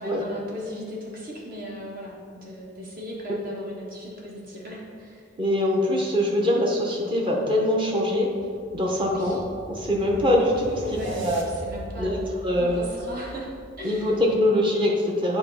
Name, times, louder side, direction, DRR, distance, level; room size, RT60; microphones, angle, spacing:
voice 1, 0.0-5.3 9.1-9.4 10.8-13.5 13.8-14.2, equal, 50° right, -4 dB, 1.6 m, -37 dB
voice 2, 5.4-8.3 8.7-9.4 9.7-11.4 12.0-12.2 12.4-12.9 13.8-15.4, left 1 dB, 25° right, -1 dB, 1.0 m, -23 dB
sound 1, 8.0-14.1, equal, 85° right, 1.0 m, -41 dB
8.6 x 3.0 x 5.6 m, 2.2 s
head